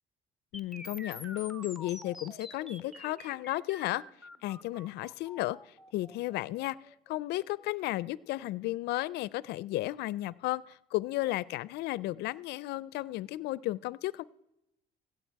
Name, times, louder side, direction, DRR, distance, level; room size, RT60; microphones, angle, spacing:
voice 1, 0.5-4.0 4.4-5.6 5.9-6.8 7.1-14.2, left 17 dB, 80° left, 21 dB, 0.4 m, -34 dB
sound 1, 0.5-8.5, left 1 dB, ahead, 0.8 m, -49 dB
16.5 x 7.9 x 4.6 m, 0.85 s
cardioid pair, 110°, 17 cm